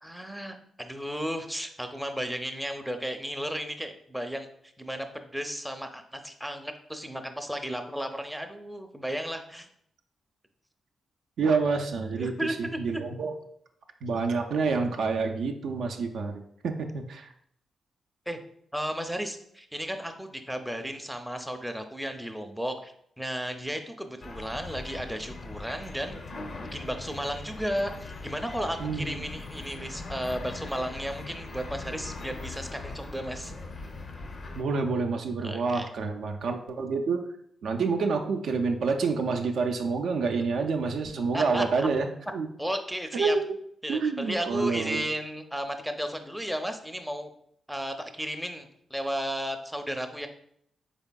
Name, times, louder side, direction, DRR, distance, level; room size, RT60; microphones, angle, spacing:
voice 1, 0.0-4.5 4.8-9.7 12.2-13.0 18.3-18.4 18.7-26.2 26.6-33.5 35.4-35.9 41.3-41.9 42.6-43.4 43.8-47.3 47.7-50.3, equal, ahead, 6 dB, 0.5 m, -34 dB
voice 2, 11.4-12.3 12.6-13.3 14.0-17.3 28.8-29.2 34.6-37.2 37.6-42.1 42.3-42.5 43.1-43.5 43.9-45.1, right 4 dB, 75° right, 4 dB, 0.3 m, -28 dB
sound 1, 24.2-34.6, left 3 dB, 55° left, 0.5 m, -40 dB
3.7 x 3.4 x 2.2 m, 0.69 s
supercardioid pair, 45°, 0 cm